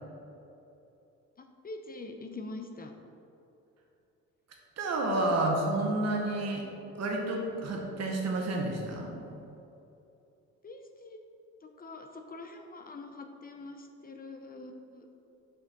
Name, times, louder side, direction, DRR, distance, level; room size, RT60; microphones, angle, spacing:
voice 1, 1.6-2.9 10.6-11.2 11.6-15.1, left 2 dB, 30° left, 4 dB, 0.5 m, -44 dB
voice 2, 4.8-6.6 7.0-9.1, right 2 dB, 60° right, 0 dB, 1.3 m, -30 dB
6.2 x 5.0 x 3.8 m, 2.8 s
cardioid pair, 90°, 30 cm